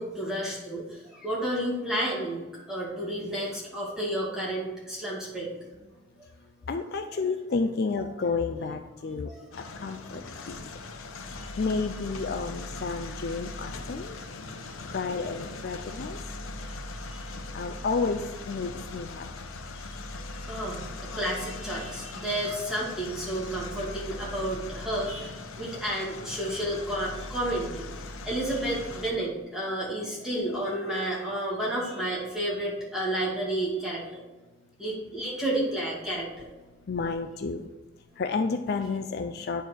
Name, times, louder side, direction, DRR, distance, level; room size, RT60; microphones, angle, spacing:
voice 1, 0.0-5.5 9.3-9.8 10.2-10.3 11.4-11.5 15.8-15.9 17.0-17.3 20.5-20.8 21.1-34.2 34.8-36.5, right 1 dB, 5° right, -7 dB, 2.3 m, -31 dB
voice 2, 6.7-9.3 9.8-10.5 11.6-14.2 14.9-16.2 17.5-19.3 36.9-37.7 38.2-39.6, left 4 dB, 50° left, 7 dB, 0.4 m, -31 dB
sound 1, 9.5-29.1, left 2 dB, 90° left, 0.8 m, -40 dB
9.7 x 4.6 x 4.5 m, 1.2 s
head